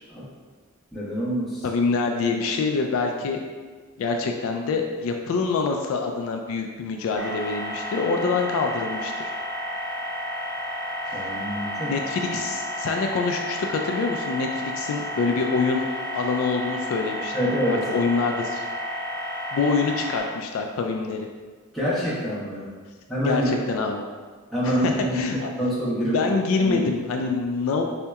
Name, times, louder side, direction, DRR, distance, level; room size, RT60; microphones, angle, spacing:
voice 1, 0.9-1.6 11.1-11.9 17.3-17.9 21.7-22.7 23.1-23.5 24.5-25.2 25.6-26.9, equal, ahead, -11 dB, 1.0 m, -26 dB
voice 2, 1.6-3.4 4.0-9.3 11.1-11.2 11.9-15.9 16.1-17.3 17.7-18.6 19.5-21.3 23.2-24.0 24.6-25.5 26.0-27.8, left 4 dB, 70° left, 3 dB, 0.3 m, -25 dB
sound 1, 7.2-20.2, equal, 20° left, 1.2 m, -31 dB
4.2 x 2.8 x 2.3 m, 1.4 s
head